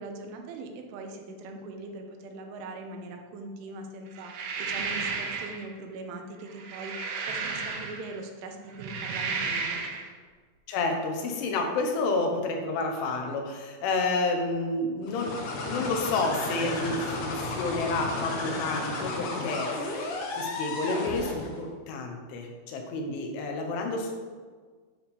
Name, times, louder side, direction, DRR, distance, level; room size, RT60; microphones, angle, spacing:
voice 1, 0.0-9.8, right 2 dB, 90° right, 3 dB, 3.5 m, -41 dB
sound 1, 4.2-5.6 6.5-8.2 8.7-10.1, right 4 dB, 75° right, 2.5 m, -33 dB
voice 2, 10.7-24.1, left 3 dB, 90° left, 3 dB, 3.7 m, -30 dB
sound 2, 15.0-21.6, left 2 dB, 60° left, 2.1 m, -33 dB
10.0 x 4.5 x 7.1 m, 1.5 s
omnidirectional pair, 5.3 m